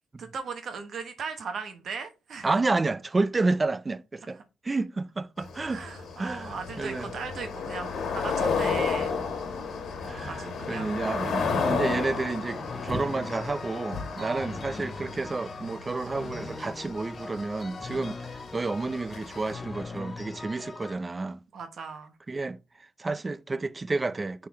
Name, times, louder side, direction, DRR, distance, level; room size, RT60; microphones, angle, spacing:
voice 1, 0.2-2.5 4.3-4.4 5.7-9.2 10.3-11.0 14.2-14.6 21.5-22.2, right 5 dB, 55° right, 1.1 m, -38 dB
voice 2, 2.4-4.4 4.6-5.8 6.2-7.1 10.0-21.4 22.3-22.6 23.0-24.5, right 3 dB, 25° right, 0.4 m, -30 dB
sound 1, 5.4-19.5, left 5 dB, 65° left, 1.6 m, -33 dB
sound 2, 11.5-21.0, left 3 dB, 30° left, 0.6 m, -41 dB
9.8 x 3.8 x 3.1 m
cardioid pair, 105°, 0 cm